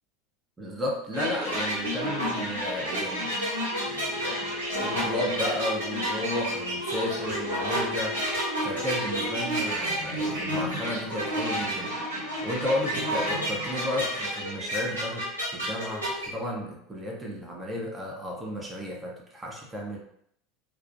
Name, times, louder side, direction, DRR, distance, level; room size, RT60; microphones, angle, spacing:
voice 1, 0.6-3.4 3.8-8.2 8.6-15.2 15.5-20.0, left 1 dB, 15° right, -2 dB, 0.6 m, -33 dB
sound 1, 1.1-16.3, equal, 85° right, 0.9 m, -30 dB
sound 2, 3.7-9.5, left 3 dB, 55° left, 0.4 m, -39 dB
2.3 x 2.1 x 2.5 m, 0.70 s
figure-of-eight pair, 75°, 0 cm